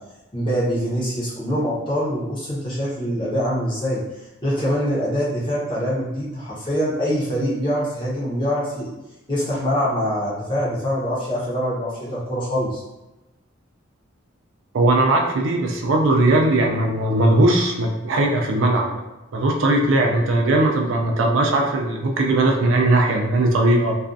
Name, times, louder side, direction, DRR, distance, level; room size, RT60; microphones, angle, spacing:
voice 1, 0.3-8.9 9.3-12.8, equal, 25° left, -7 dB, 0.7 m, -24 dB
voice 2, 14.7-19.0 19.3-24.0, right 2 dB, 70° right, 1 dB, 0.4 m, -19 dB
2.4 x 2.3 x 2.5 m, 1.0 s
head